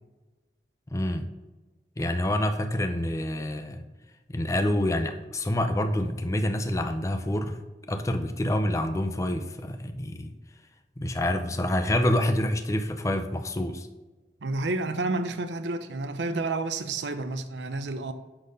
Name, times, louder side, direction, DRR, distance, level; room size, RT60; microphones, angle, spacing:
voice 1, 0.9-1.3 2.0-3.8 4.3-7.6 7.9-10.3 11.0-13.9, left 1 dB, 20° left, 0.5 m, -27 dB
voice 2, 14.4-18.1, right 2 dB, 85° right, 0.7 m, -30 dB
10.5 x 4.2 x 5.2 m
head